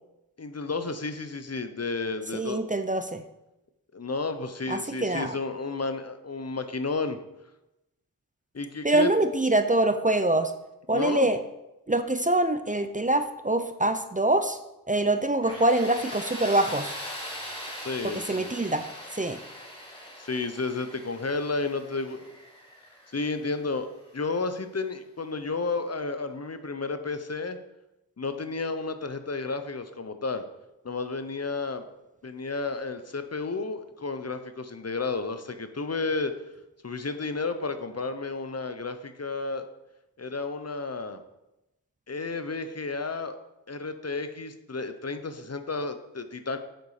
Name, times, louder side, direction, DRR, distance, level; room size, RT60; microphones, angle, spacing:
voice 1, 0.4-2.6 3.9-7.2 8.5-9.1 10.9-11.3 17.8-18.5 20.2-22.3 23.1-23.9 24.1-27.6 28.2-30.4 30.8-31.9 32.2-36.3 36.8-39.6 40.2-41.2 42.1-43.4 43.7-46.6, left 3 dB, 40° left, 9 dB, 0.9 m, -32 dB
voice 2, 2.3-3.2 4.7-5.3 8.8-10.5 10.9-11.4 11.9-14.6 14.9-16.9 18.1-19.4, right 2 dB, 20° right, 9 dB, 0.6 m, -25 dB
Tools, 15.4-24.2, equal, 15° left, 2.9 m, -41 dB
8.0 x 6.8 x 5.0 m, 0.93 s
cardioid pair, 45°, 37 cm